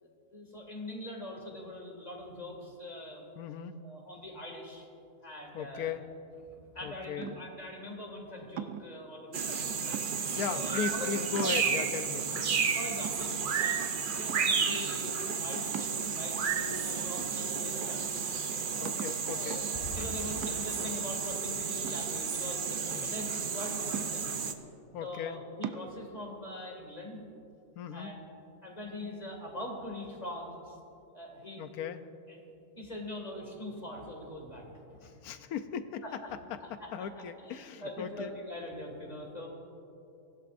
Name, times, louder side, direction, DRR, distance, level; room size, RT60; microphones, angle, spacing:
voice 1, 0.0-3.4 3.8-4.9 5.2-5.9 6.5-11.1 11.4-11.7 12.7-16.8 17.0-18.6 19.3-19.6 19.9-24.4 25.0-27.2 27.9-28.2 28.6-30.8 31.1-31.6 32.3-32.4 32.8-35.1 36.0-36.3 36.6-37.1 37.4-39.5, left 1 dB, 25° left, 0 dB, 2.3 m, -43 dB
voice 2, 3.4-3.7 5.5-6.0 6.8-7.4 10.3-12.6 18.8-19.6 22.9-23.1 24.9-25.4 27.8-28.1 31.6-32.0 35.0-36.0 36.5-38.3, left 7 dB, 80° left, 10 dB, 1.2 m, -37 dB
sound 1, 7.2-7.7 8.6-9.0 9.9-10.4 11.0-11.1 11.4-12.0 12.5-12.6 13.0-13.8 14.3-14.7 15.7-16.5 17.2-17.8 18.1-18.2 18.9-19.3 20.4-20.9 21.8-22.7 23.9-24.5 25.6-25.9, right 9 dB, 90° right, 1.2 m, -41 dB
sound 2, 9.3-24.5, right 6 dB, 50° right, 0.7 m, -32 dB
23.5 x 15.5 x 2.6 m, 2.7 s
omnidirectional pair, 1.6 m